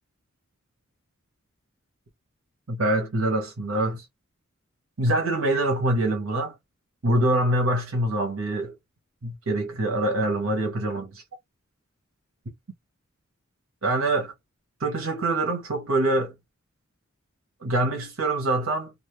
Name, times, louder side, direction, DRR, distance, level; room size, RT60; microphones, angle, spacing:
voice 1, 2.7-4.1 5.0-6.5 7.0-8.7 9.2-11.2 13.8-14.3 14.8-16.3 17.6-18.9, right 1 dB, 75° right, 1.1 m, -25 dB
2.6 x 2.5 x 3.1 m
head